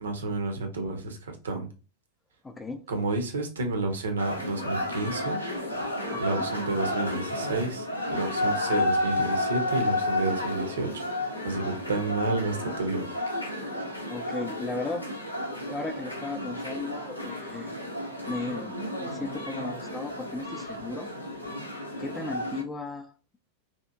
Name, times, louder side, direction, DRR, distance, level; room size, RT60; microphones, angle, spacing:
voice 1, 0.0-1.7 2.9-5.4 6.2-10.9 11.4-13.2, right 2 dB, 65° right, 0.6 m, -30 dB
voice 2, 2.4-2.8 6.1-6.5 14.1-15.1 15.7-17.8 18.2-21.1 22.0-23.1, left 3 dB, 15° left, 0.4 m, -36 dB
sound 1, 4.2-22.6, left 1 dB, 90° left, 0.6 m, -32 dB
2.8 x 2.4 x 2.3 m
figure-of-eight pair, 90°, 0 cm